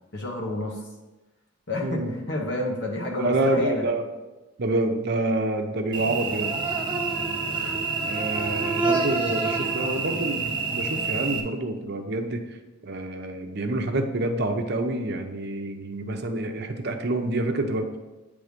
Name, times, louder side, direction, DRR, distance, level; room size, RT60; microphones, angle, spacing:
voice 1, 0.1-0.8 1.7-3.9, left 2 dB, 65° left, -1 dB, 1.1 m, -29 dB
voice 2, 1.8-2.1 3.2-4.0 4.6-6.5 8.0-12.6 12.8-18.0, right 2 dB, 60° right, 5 dB, 0.8 m, -27 dB
Cricket / Buzz, 5.9-11.4, right 4 dB, 25° right, 1.1 m, -27 dB
9.4 x 3.5 x 5.1 m, 1.1 s
head